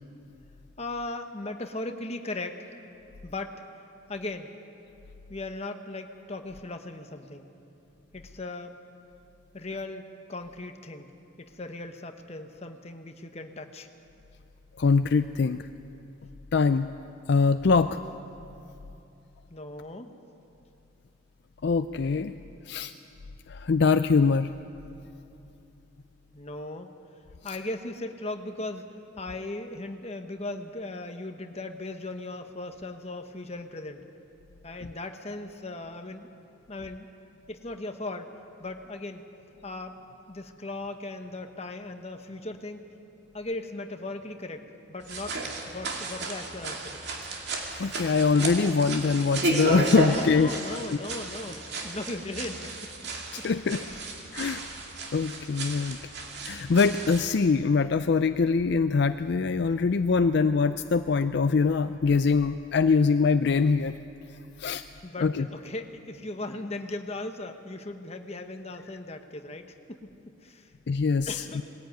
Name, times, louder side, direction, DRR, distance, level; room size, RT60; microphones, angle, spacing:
voice 1, 0.8-2.8 3.2-3.6 4.1-4.5 5.3-7.5 8.1-8.8 9.5-10.0 10.3-11.1 11.4-13.9 19.5-20.1 26.3-26.9 27.4-34.1 34.6-36.3 36.7-37.1 37.5-38.3 38.6-39.2 39.6-39.9 40.3-42.8 43.3-47.0 50.0-52.7 53.4-54.0 64.9-69.6 69.9-70.1 70.4-70.7 71.3-71.6, left 2 dB, 30° left, 6 dB, 1.1 m, -38 dB
voice 2, 14.8-15.7 16.5-16.9 17.3-18.0 21.6-22.3 22.7-22.9 23.5-24.5 47.8-50.5 50.9-51.0 53.3-53.8 54.3-54.6 55.1-56.0 56.4-63.9 64.6-64.8 65.2-65.5 70.9-71.4, left 4 dB, 60° left, 10 dB, 0.4 m, -23 dB
sound 1, 45.0-57.3, right 2 dB, 55° right, 2.6 m, -33 dB
20.5 x 15.0 x 9.2 m, 2.8 s
head